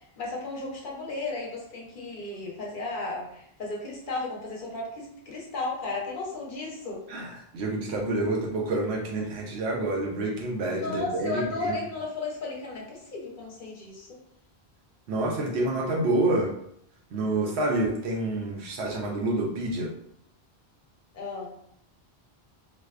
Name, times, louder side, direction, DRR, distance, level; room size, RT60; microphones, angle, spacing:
voice 1, 0.2-7.0 10.6-14.2 21.1-21.6, left 3 dB, 55° left, -3 dB, 0.8 m, -34 dB
voice 2, 7.1-11.7 15.1-16.5 17.1-19.9, right 2 dB, 85° right, 0 dB, 0.9 m, -28 dB
2.5 x 2.2 x 2.3 m, 0.71 s
omnidirectional pair, 1.1 m